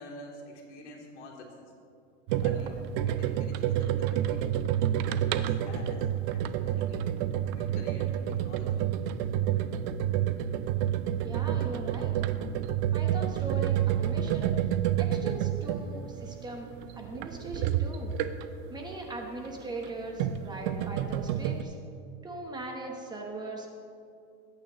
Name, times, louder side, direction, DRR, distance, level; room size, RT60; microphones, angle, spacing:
voice 1, 0.0-1.7 2.4-4.5 5.0-7.2 7.5-8.8, left 1 dB, 80° left, -2 dB, 3.0 m, -48 dB
sound 1, 2.3-18.7 19.7-21.6, right 10 dB, 45° right, 0.6 m, -29 dB
voice 2, 11.2-12.1 12.9-14.7 15.0-16.7 16.9-18.1 18.7-21.7 22.2-23.7, right 2 dB, 10° right, 1 dB, 1.0 m, -40 dB
20.0 x 8.9 x 3.0 m, 2.4 s
supercardioid pair, 150°, 35 cm